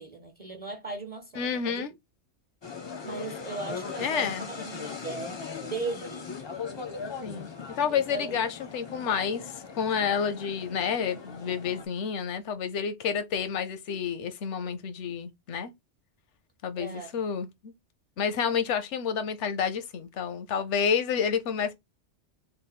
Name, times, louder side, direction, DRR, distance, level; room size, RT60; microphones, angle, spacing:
voice 1, 0.0-1.8 3.0-6.3 7.9-8.5 16.8-17.2, right 3 dB, 40° right, 0.7 m, -38 dB
voice 2, 1.4-1.9 4.0-4.5 7.2-7.5 7.8-15.7 16.6-17.7 18.2-21.7, left 7 dB, 85° left, 1.0 m, -29 dB
sound 1, 2.6-11.9, left 5 dB, 35° left, 0.4 m, -39 dB
3.4 x 2.0 x 4.1 m
omnidirectional pair, 1.2 m